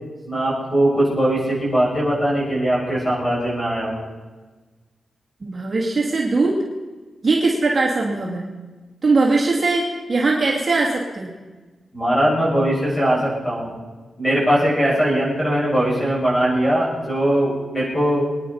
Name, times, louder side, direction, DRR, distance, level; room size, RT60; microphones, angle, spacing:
voice 1, 0.3-4.0 11.9-13.8 14.2-18.2, right 1 dB, 20° left, -6 dB, 7.5 m, -20 dB
voice 2, 5.4-6.6 7.2-8.5 9.0-11.3 13.2-13.3, right 3 dB, 30° right, -3 dB, 2.5 m, -20 dB
24.5 x 10.5 x 5.7 m, 1.3 s
wide cardioid pair, 145°, 0 cm